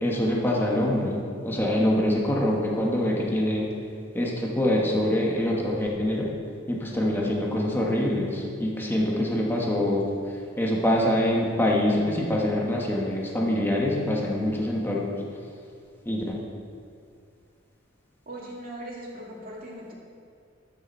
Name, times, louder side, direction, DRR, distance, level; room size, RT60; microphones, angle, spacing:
voice 1, 0.0-3.7 4.1-6.3 6.7-10.0 10.6-15.1 16.0-16.4, left 1 dB, 10° left, -3 dB, 1.3 m, -25 dB
voice 2, 18.3-19.9, right 1 dB, 50° right, -4 dB, 2.2 m, -39 dB
12.5 x 6.7 x 4.4 m, 2.3 s
head